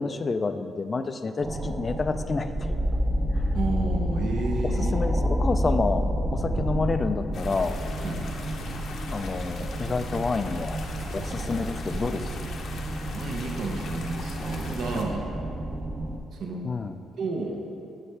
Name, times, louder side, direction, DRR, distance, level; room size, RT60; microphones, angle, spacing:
voice 1, 0.0-2.8 4.6-7.8 9.1-10.8 11.1-12.3 14.9-15.0 16.6-17.0, left 4 dB, 35° left, 10 dB, 0.4 m, -29 dB
sound 1, 1.4-16.2, equal, 20° right, 0.6 m, -29 dB
voice 2, 3.5-4.9 8.0-8.3 11.2-11.6 13.1-15.3 16.4-16.7 17.2-17.6, right 3 dB, 65° right, 1 dB, 0.9 m, -31 dB
sound 2, 7.3-15.0, left 4 dB, 65° left, 0.8 m, -41 dB
9.8 x 5.8 x 3.3 m, 2.7 s
cardioid pair, 90°, 0 cm